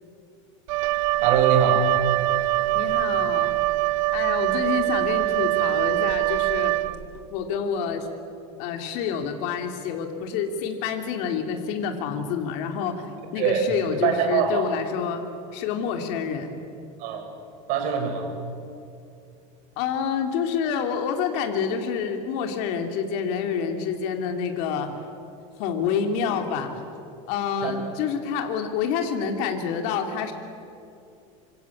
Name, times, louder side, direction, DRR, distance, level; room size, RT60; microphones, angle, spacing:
Wind instrument woodwind instrument, 0.7-7.2, right 18 dB, 80° right, 1.2 m, -23 dB
voice 1, 1.2-1.9 13.4-13.6 14.0-14.6 17.0-17.3 17.7-18.3 27.6-27.7, right 7 dB, 50° right, 3 dB, 6.5 m, -23 dB
voice 2, 2.7-3.5 4.1-6.8 7.3-8.1 8.6-15.2 15.5-16.5 19.8-25.1 25.6-26.8 27.3-30.3, left 6 dB, 60° left, 4 dB, 2.9 m, -28 dB
26.5 x 25.5 x 8.7 m, 2.6 s
supercardioid pair, 150°, 17 cm